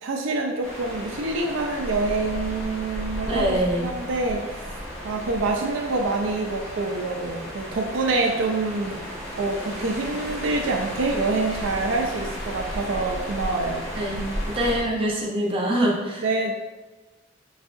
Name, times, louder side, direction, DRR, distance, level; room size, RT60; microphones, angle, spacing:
voice 1, 0.0-4.7 5.0-9.0 9.3-13.9 16.2-16.5, right 3 dB, 90° right, 2 dB, 0.5 m, -26 dB
sound 1, 0.6-14.8, equal, 5° left, 1.1 m, -34 dB
voice 2, 3.3-3.9 13.9-14.2 14.4-16.2, right 1 dB, 30° right, -2 dB, 0.7 m, -24 dB
4.0 x 3.6 x 2.5 m, 1.1 s
head